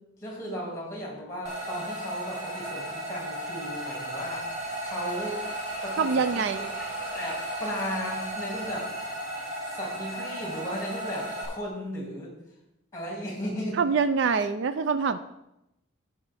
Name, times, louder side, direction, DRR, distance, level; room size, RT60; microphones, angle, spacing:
voice 1, 0.2-4.4 4.8-5.4 5.8-8.8 9.8-12.3 12.9-13.8, equal, 15° left, -1 dB, 2.2 m, -35 dB
sound 1, 1.5-11.5, right 1 dB, 35° right, 1.8 m, -35 dB
voice 2, 6.0-6.7 13.8-15.2, right 5 dB, 60° right, 11 dB, 0.4 m, -25 dB
15.0 x 5.0 x 3.4 m, 0.87 s
head